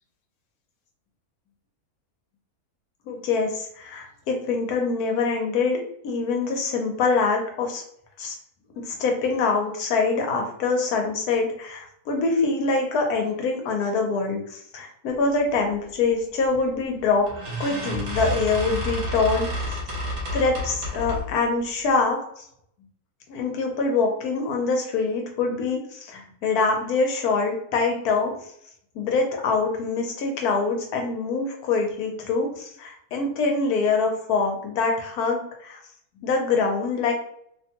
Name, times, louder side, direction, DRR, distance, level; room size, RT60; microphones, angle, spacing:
voice 1, 3.1-7.8 8.2-8.3 8.8-17.3 17.6-19.7 20.3-22.4 23.3-28.3 28.9-35.8 36.2-37.1, left 4 dB, 80° left, 2 dB, 1.2 m, -24 dB
sound 1, 16.5-16.8 17.3-21.4, left 1 dB, 65° right, 1.1 m, -30 dB
2.9 x 2.2 x 2.8 m, 0.69 s
omnidirectional pair, 1.6 m